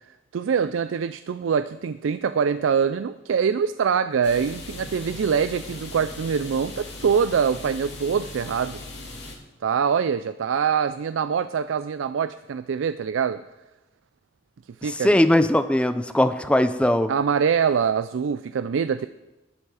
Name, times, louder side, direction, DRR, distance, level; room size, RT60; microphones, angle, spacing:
voice 1, 0.3-8.8 9.6-13.4 14.8-15.2 17.1-19.1, right 6 dB, 90° right, 13 dB, 0.4 m, -24 dB
sound 1, 4.2-9.3, left 2 dB, 65° left, 2.5 m, -39 dB
voice 2, 15.0-17.1, left 1 dB, 5° left, 11 dB, 0.5 m, -19 dB
12.0 x 10.5 x 4.9 m, 1.0 s
head